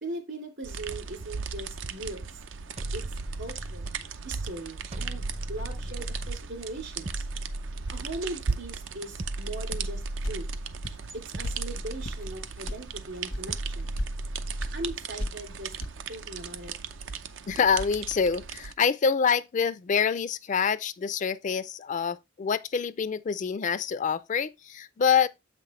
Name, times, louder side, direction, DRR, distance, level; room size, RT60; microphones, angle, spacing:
voice 1, 0.0-2.2 2.9-3.9 4.2-5.2 5.5-7.3 7.9-10.0 10.3-10.5 11.1-13.9 14.7-15.7 16.1-16.7, right 2 dB, 70° right, 2.7 m, -39 dB
sound 1, 0.6-18.7, right 5 dB, 85° right, 0.6 m, -38 dB
sound 2, 2.8-4.1 4.9-6.5 7.0-8.5 9.2-10.8 11.3-12.7 13.5-15.1, right 1 dB, 35° right, 0.5 m, -36 dB
sound 3, 9.7-9.9 10.2-10.4 10.8-11.0 11.4-11.6 12.0-12.2 12.7-12.8 13.3-13.5 13.8-14.1 14.6-14.7 15.2-15.4 15.8-15.9, left 1 dB, 90° left, 1.2 m, -33 dB
voice 2, 17.5-25.3, left 6 dB, 40° left, 0.4 m, -26 dB
7.5 x 5.8 x 3.1 m
head